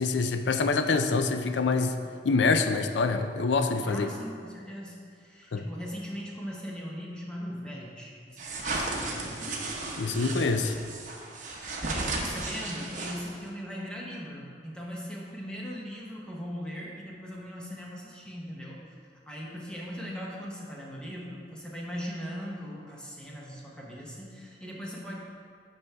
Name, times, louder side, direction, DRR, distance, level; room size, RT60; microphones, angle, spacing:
voice 1, 0.0-2.0 2.2-4.1 5.5-5.6 10.0-10.7, left 4 dB, 75° left, 7 dB, 0.5 m, -25 dB
voice 2, 3.8-9.8 11.4-19.0 19.3-25.1, equal, 5° left, -4 dB, 1.0 m, -39 dB
sound 1, 8.4-13.5, right 2 dB, 45° right, 0.8 m, -34 dB
11.0 x 4.3 x 3.4 m, 2.1 s
head